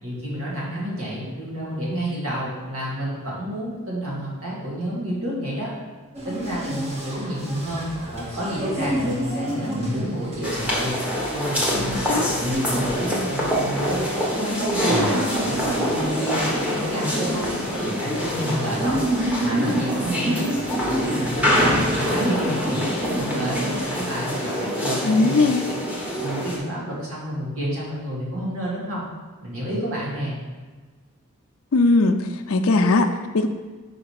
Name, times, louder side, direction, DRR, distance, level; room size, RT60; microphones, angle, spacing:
voice 1, 0.0-5.7 6.3-11.0 11.3-14.1 14.4-17.4 17.8-19.0 19.4-20.5 20.8-25.5 26.2-29.0 29.4-30.4, equal, 75° right, -5 dB, 2.1 m, -29 dB
sound 1, 6.1-24.2, right 1 dB, 30° right, 1.1 m, -30 dB
sound 2, 10.4-26.6, equal, 5° right, 1.1 m, -25 dB
voice 2, 11.7-12.3 25.0-25.7 31.7-33.5, left 3 dB, 70° left, 6 dB, 0.5 m, -20 dB
5.1 x 5.0 x 4.7 m, 1.4 s
head